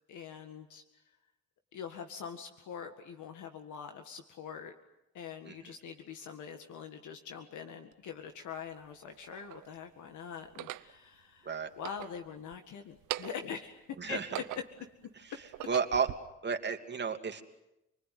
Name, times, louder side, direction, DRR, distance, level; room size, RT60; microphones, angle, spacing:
voice 1, 0.1-0.8 1.7-4.7 5.1-13.8 14.1-14.4, left 7 dB, 75° left, 6 dB, 2.0 m, -44 dB
sound 1, 7.9-8.0 8.8-9.7 10.4-10.9 11.7-12.6 12.9-13.5 14.0-14.9 15.4-16.2, right 15 dB, 85° right, 0.9 m, -41 dB
voice 2, 15.7-16.1 16.4-17.4, right 6 dB, 35° right, 5 dB, 2.8 m, -32 dB
28.5 x 20.5 x 9.5 m, 0.91 s
cardioid pair, 90°, 30 cm